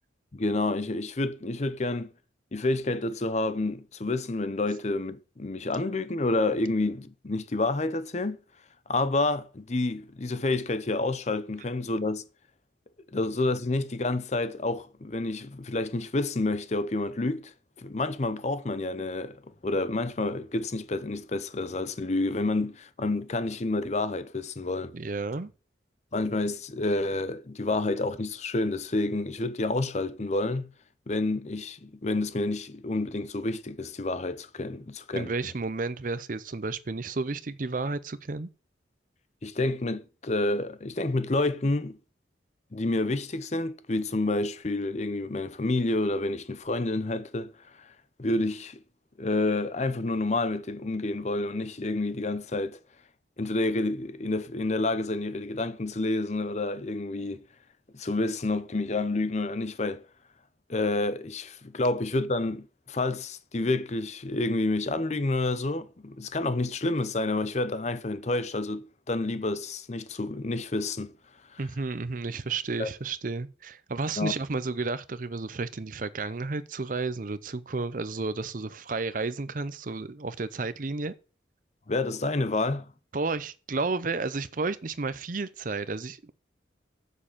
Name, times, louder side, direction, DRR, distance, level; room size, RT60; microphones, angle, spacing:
voice 1, 0.3-2.1 2.5-8.4 8.9-12.2 13.1-19.4 19.6-24.9 26.1-30.7 31.1-35.3 39.4-42.0 42.7-47.5 48.2-48.8 49.2-52.8 53.4-57.4 57.9-60.0 60.7-71.1 71.5-71.6 72.8-72.9 74.2-74.3 81.9-82.9, left 2 dB, 35° left, 0.7 m, -29 dB
voice 2, 24.9-25.5 35.2-38.5 71.6-81.1 83.1-86.3, right 3 dB, 45° right, 0.6 m, -32 dB
7.6 x 6.5 x 7.0 m
head